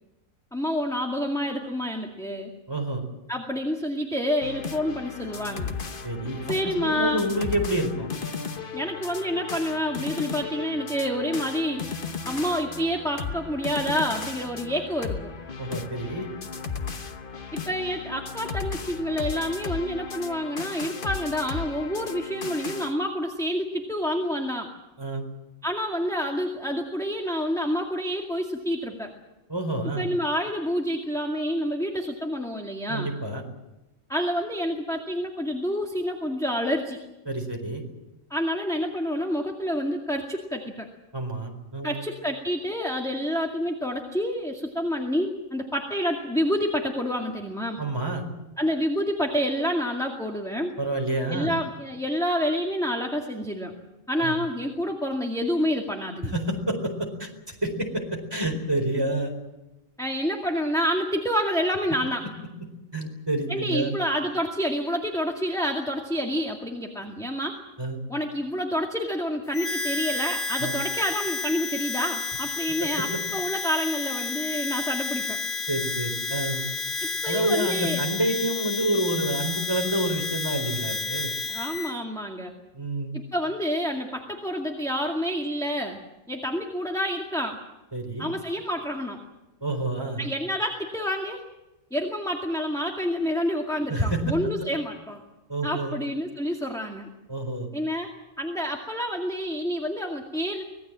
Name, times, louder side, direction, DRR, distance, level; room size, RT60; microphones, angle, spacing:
voice 1, 0.5-2.5 3.3-5.7 6.5-7.2 8.7-11.9 12.2-15.3 17.5-24.7 25.6-29.1 30.0-33.1 34.1-37.0 38.3-40.9 41.8-47.8 48.6-50.7 51.3-53.7 54.1-56.3 60.0-62.2 63.5-67.6 68.1-75.4 77.0-78.0 81.5-82.5 83.1-86.0 86.3-87.6 88.2-89.2 90.2-91.4 91.9-95.2 95.6-97.1 97.7-98.1 98.4-100.6, equal, ahead, 1 dB, 2.1 m, -28 dB
voice 2, 2.7-3.1 6.0-8.1 15.6-16.3 25.0-25.2 29.5-30.1 32.9-33.4 37.3-37.8 41.1-42.0 47.8-48.2 50.8-51.5 54.2-54.4 56.2-59.3 62.9-63.9 67.8-68.0 70.6-70.7 72.8-72.9 75.7-76.6 77.3-81.3 82.7-83.1 87.9-88.3 89.6-90.2 93.9-94.5 95.5-95.9 97.3-97.7, right 1 dB, 15° right, 3 dB, 4.4 m, -28 dB
sound 1, 4.4-22.9, left 5 dB, 40° left, 1.3 m, -35 dB
Harmonica, 69.5-82.0, left 4 dB, 65° left, 1.5 m, -31 dB
25.0 x 19.5 x 7.5 m, 0.99 s
omnidirectional pair, 1.4 m